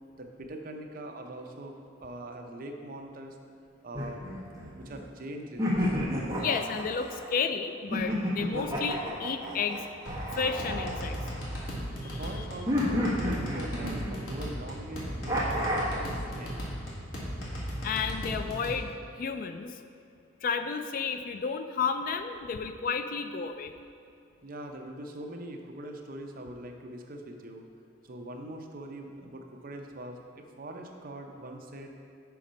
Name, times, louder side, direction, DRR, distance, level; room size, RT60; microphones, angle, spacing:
voice 1, 0.2-1.7 2.0-3.4 3.8-4.2 4.7-6.0 12.0-16.6 24.4-27.6 28.0-31.9, right 1 dB, 45° right, 3 dB, 0.6 m, -42 dB
sound 1, 3.9-5.0 5.6-7.3 7.9-11.7 12.7-14.4 15.3-16.1, equal, 15° right, 1.1 m, -31 dB
voice 2, 6.4-9.8 10.4-11.2 12.0-12.4 17.8-18.9 19.2-19.8 20.4-23.7, left 5 dB, 45° left, 9 dB, 0.3 m, -32 dB
sound 2, 10.1-18.8, equal, 90° left, 1.6 m, -37 dB
5.7 x 5.2 x 5.1 m, 2.4 s
head